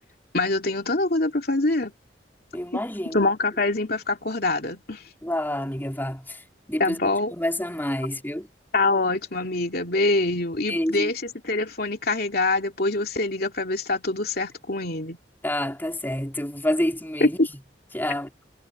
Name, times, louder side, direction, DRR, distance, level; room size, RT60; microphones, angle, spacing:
voice 1, 0.3-1.9 2.7-5.0 6.8-7.3 8.7-15.2 17.2-17.5, left 2 dB, 60° left, 2.9 m, -25 dB
voice 2, 2.5-3.2 5.2-6.4 6.7-8.5 10.6-11.1 15.4-17.4 17.9-18.3, left 1 dB, 10° left, 4.3 m, -28 dB
head